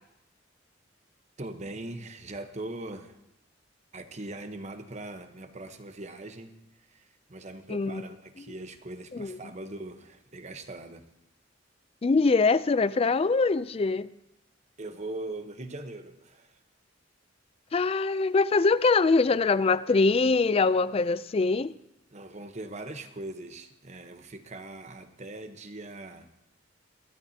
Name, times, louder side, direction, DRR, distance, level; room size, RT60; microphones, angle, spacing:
voice 1, 1.4-3.2 3.9-11.0 14.8-16.6 22.1-26.3, right 2 dB, 35° right, 8 dB, 1.0 m, -41 dB
voice 2, 7.7-8.0 9.1-9.4 12.0-14.1 17.7-21.7, left 4 dB, 30° left, 17 dB, 0.3 m, -23 dB
22.0 x 12.5 x 2.8 m, 0.86 s
head